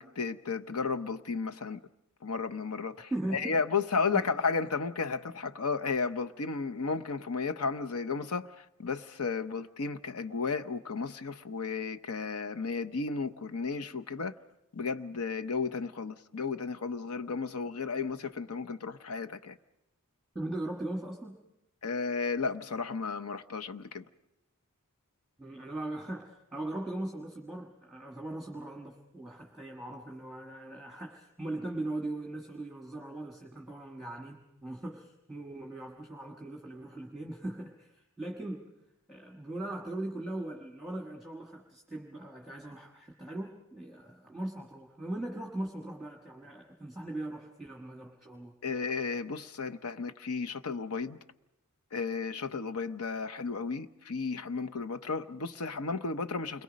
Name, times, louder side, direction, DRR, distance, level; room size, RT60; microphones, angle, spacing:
voice 1, 0.0-1.8 2.2-14.3 14.7-19.6 21.8-24.0 48.6-51.2 51.9-56.6, left 4 dB, 85° left, 0.8 m, -33 dB
voice 2, 3.1-3.6 4.1-4.2 20.3-21.4 25.4-38.7 39.1-48.5, right 1 dB, ahead, 1.5 m, -39 dB
29.0 x 22.5 x 5.2 m
head